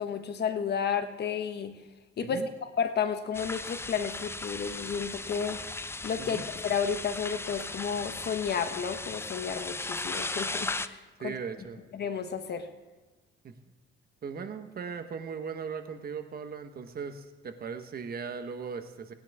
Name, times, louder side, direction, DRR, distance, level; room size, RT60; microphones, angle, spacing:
voice 1, 0.0-1.8 2.2-5.6 6.0-11.4 11.9-12.7, left 7 dB, 55° left, 8 dB, 1.2 m, -32 dB
sound 1, 3.3-10.9, left 2 dB, 10° left, 0.5 m, -37 dB
voice 2, 11.2-11.9 13.4-13.5 14.2-19.1, right 6 dB, 50° right, 8 dB, 1.2 m, -38 dB
19.0 x 10.0 x 3.6 m, 1.2 s
cardioid pair, 90°, 20 cm